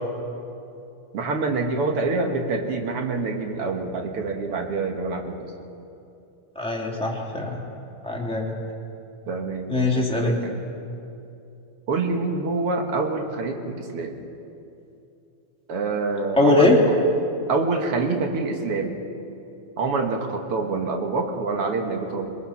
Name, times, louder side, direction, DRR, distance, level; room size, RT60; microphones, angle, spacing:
voice 1, 1.1-5.5 9.3-10.6 11.9-14.2 15.7-16.8 17.5-19.0 19.8-22.4, right 3 dB, 55° right, 4 dB, 2.0 m, -26 dB
voice 2, 6.5-7.6 8.0-8.5 9.7-10.4 16.4-16.8, left 2 dB, ahead, -2 dB, 2.2 m, -21 dB
21.5 x 21.0 x 5.8 m, 2.7 s
omnidirectional pair, 3.7 m